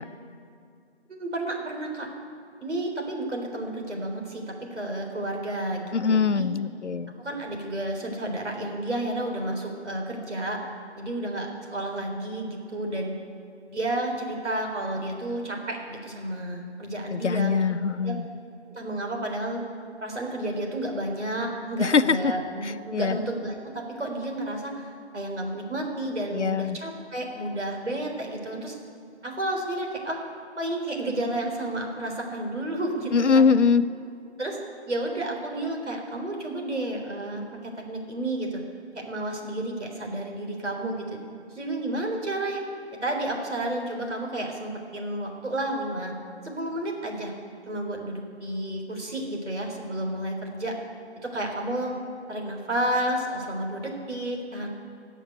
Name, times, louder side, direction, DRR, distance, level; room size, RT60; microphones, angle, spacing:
voice 1, 1.1-2.1 2.6-4.4 4.7-6.5 7.2-10.6 11.0-13.1 13.7-17.5 18.0-18.1 18.7-19.6 20.0-28.7 29.2-30.2 30.6-33.6 34.4-34.6 34.9-38.6 38.9-41.2 41.5-42.6 43.0-46.1 46.4-47.3 47.7-50.7 51.2-51.9 52.3-54.7, right 1 dB, 80° right, 1 dB, 3.9 m, -31 dB
voice 2, 5.9-7.1 17.1-18.3 21.8-22.3 22.9-23.2 26.3-26.8 33.1-33.8, left 5 dB, 80° left, 12 dB, 0.8 m, -22 dB
18.5 x 7.2 x 9.4 m, 2.4 s
figure-of-eight pair, 165°, 34 cm